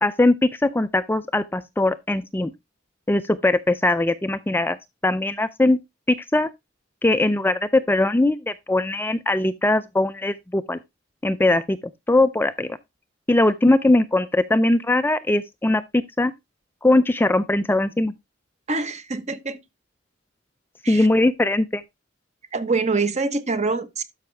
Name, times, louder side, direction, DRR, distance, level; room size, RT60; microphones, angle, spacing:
voice 1, 0.0-2.5 3.1-4.8 5.0-5.8 6.1-6.5 7.0-10.8 11.2-11.8 12.1-12.8 13.3-16.3 16.8-18.1 20.9-21.8, left 2 dB, 10° left, 0.4 m, -20 dB
voice 2, 18.7-19.6 20.8-21.1 22.5-24.0, right 3 dB, 35° right, 1.0 m, -25 dB
12.0 x 5.7 x 3.3 m
head